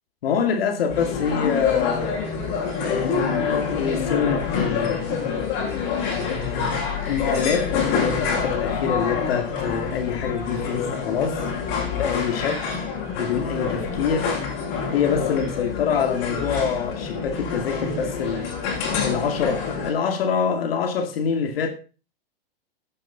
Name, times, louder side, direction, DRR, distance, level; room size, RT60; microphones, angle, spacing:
voice 1, 0.2-2.4 2.8-5.1 6.0-11.5 12.0-12.7 13.2-14.3 14.9-18.5 19.0-21.7, left 6 dB, 75° left, 2.3 m, -25 dB
sound 1, 0.9-19.9, left 6 dB, 45° left, 6.9 m, -27 dB
10.5 x 9.3 x 5.6 m
hypercardioid pair, 130°, 30 cm